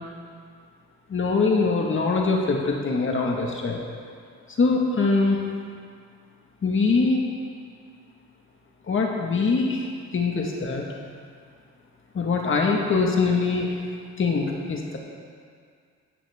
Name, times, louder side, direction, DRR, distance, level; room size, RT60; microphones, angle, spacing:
voice 1, 1.1-3.8 4.6-5.5 6.6-7.2 8.9-9.9 10.1-10.8 12.2-13.7 14.2-15.0, left 4 dB, 40° left, 0 dB, 1.7 m, -23 dB
15.5 x 11.0 x 3.6 m, 2.1 s
cardioid pair, 90°, 30 cm